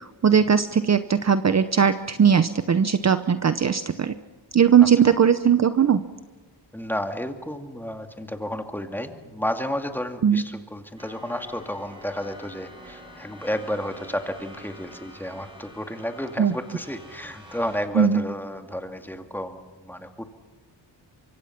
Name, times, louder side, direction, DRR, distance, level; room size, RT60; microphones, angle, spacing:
voice 1, 0.0-4.1 4.5-6.0 10.2-10.4 16.4-16.5 17.9-18.2, right 7 dB, 35° right, 11 dB, 0.8 m, -19 dB
voice 2, 6.7-20.3, equal, 5° left, 5 dB, 2.2 m, -32 dB
sound 1, 11.0-17.9, left 1 dB, 10° right, 4.7 m, -46 dB
24.5 x 23.5 x 5.9 m, 1.3 s
cardioid pair, 100°, 44 cm